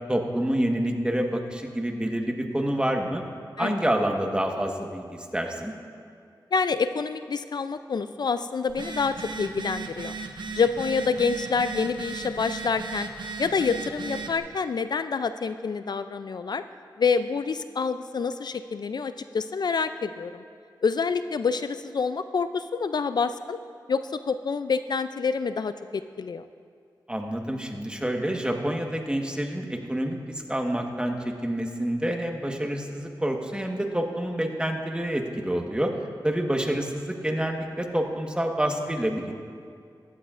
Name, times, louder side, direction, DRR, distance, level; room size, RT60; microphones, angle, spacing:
voice 1, 0.1-3.2 3.6-5.7 27.1-35.9 36.2-39.3, right 1 dB, 10° right, 2 dB, 1.3 m, -28 dB
voice 2, 6.5-10.2 10.5-13.1 13.4-16.6 17.0-20.4 20.8-23.6 23.9-26.4, left 5 dB, 60° left, 11 dB, 0.3 m, -27 dB
Telephone, 8.7-14.4, right 4 dB, 75° right, 0.8 m, -36 dB
16.0 x 11.5 x 2.5 m, 2.3 s
cardioid pair, 50°, 8 cm